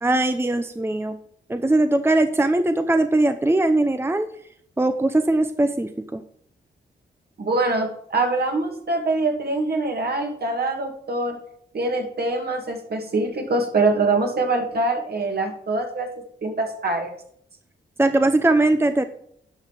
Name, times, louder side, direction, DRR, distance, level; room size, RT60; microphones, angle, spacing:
voice 1, 0.0-1.2 1.5-4.3 4.8-6.2 18.0-19.0, right 2 dB, 10° right, 9 dB, 0.7 m, -20 dB
voice 2, 7.4-11.4 11.7-16.1 16.4-17.1, right 2 dB, 55° right, 3 dB, 2.4 m, -24 dB
10.5 x 5.7 x 4.8 m, 0.68 s
cardioid pair, 50°, 19 cm